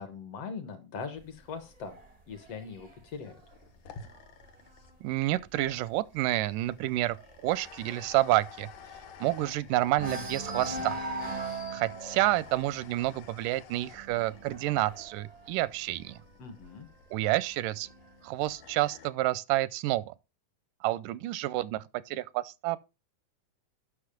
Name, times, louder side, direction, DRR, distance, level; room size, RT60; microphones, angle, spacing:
voice 1, 0.0-2.0 2.3-3.4 16.4-16.9, left 5 dB, 60° left, 2.0 m, -41 dB
sound 1, 1.2-4.8 5.2-5.5 5.8-5.9 6.3-9.5 9.9-16.5 17.3-18.3, right 2 dB, 65° right, 0.3 m, -41 dB
sound 2, 3.1-19.1, left 6 dB, 90° left, 2.9 m, -52 dB
voice 2, 5.0-7.2 7.4-8.7 9.2-11.0 11.7-16.2 17.1-17.9 18.2-20.2 20.8-22.8, right 17 dB, 85° right, 2.2 m, -29 dB
9.9 x 6.2 x 5.1 m
omnidirectional pair, 3.7 m